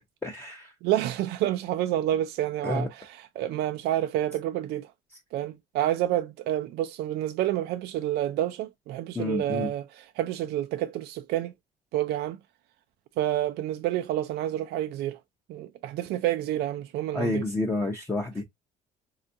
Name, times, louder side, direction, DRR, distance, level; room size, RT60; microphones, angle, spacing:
voice 1, 0.2-0.7 2.6-2.9 9.1-9.7 17.1-18.4, left 2 dB, 15° left, 0.6 m, -29 dB
voice 2, 0.8-4.9 5.3-11.5 11.9-12.4 13.2-15.2 15.5-17.4, right 13 dB, 75° right, 0.4 m, -29 dB
3.5 x 2.4 x 2.6 m
cardioid pair, 110°, 17 cm